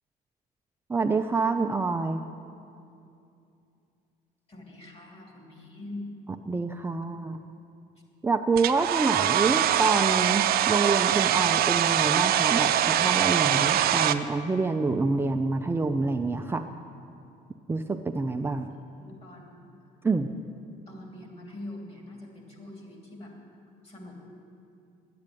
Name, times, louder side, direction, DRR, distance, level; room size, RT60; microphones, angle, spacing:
voice 1, 0.9-2.2 6.5-7.4 8.2-16.6 17.7-18.7 20.0-20.3, right 3 dB, 15° right, 5 dB, 0.4 m, -27 dB
voice 2, 4.5-6.1 18.7-19.6 20.9-23.3 23.8-24.2, left 2 dB, 35° left, 0 dB, 2.9 m, -43 dB
Domestic sounds home sounds, 8.6-14.1, right 11 dB, 65° right, 0.6 m, -23 dB
10.5 x 8.6 x 9.2 m, 2.6 s
cardioid pair, 110°, 17 cm